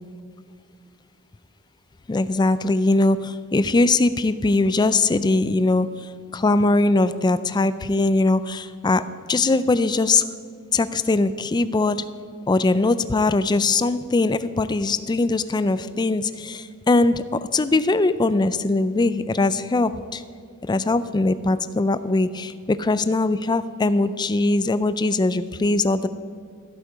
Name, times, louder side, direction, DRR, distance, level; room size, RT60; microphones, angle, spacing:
voice 1, 2.1-5.9 6.3-9.0 9.3-10.2 10.7-12.0 12.5-17.2 17.5-20.2 20.7-26.1, left 2 dB, 20° left, 14 dB, 0.3 m, -21 dB
14.0 x 8.1 x 5.0 m, 2.1 s
head